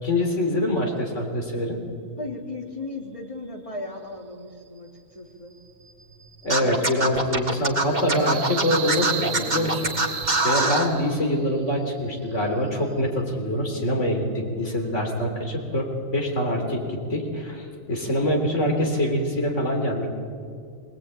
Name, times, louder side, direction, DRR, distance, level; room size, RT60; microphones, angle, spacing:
voice 1, 0.0-1.8 6.4-9.8 10.4-20.1, left 1 dB, 60° left, 1 dB, 3.8 m, -25 dB
voice 2, 2.2-5.5, left 2 dB, 25° left, 1 dB, 2.8 m, -36 dB
sound 1, 5.5-11.5, right 8 dB, 75° right, 1.3 m, -36 dB
Scratching (performance technique), 6.5-10.9, right 2 dB, 35° right, 1.9 m, -23 dB
24.0 x 19.0 x 8.9 m, 2.3 s
omnidirectional pair, 1.4 m